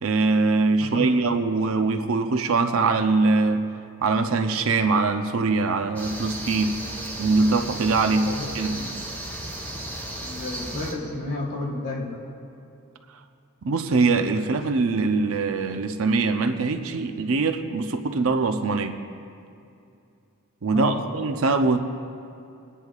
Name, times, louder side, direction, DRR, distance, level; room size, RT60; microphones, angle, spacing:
voice 1, 0.0-3.6 4.0-6.8 7.2-8.3 8.5-8.9 13.6-19.0 20.6-21.8, right 3 dB, 65° right, 7 dB, 0.6 m, -22 dB
voice 2, 0.8-1.1 8.2-8.4 10.2-12.2 20.7-21.1, left 2 dB, 45° left, -1 dB, 2.0 m, -31 dB
sound 1, 5.9-10.9, right 1 dB, 10° left, 2.8 m, -34 dB
29.0 x 10.0 x 2.4 m, 2.6 s
head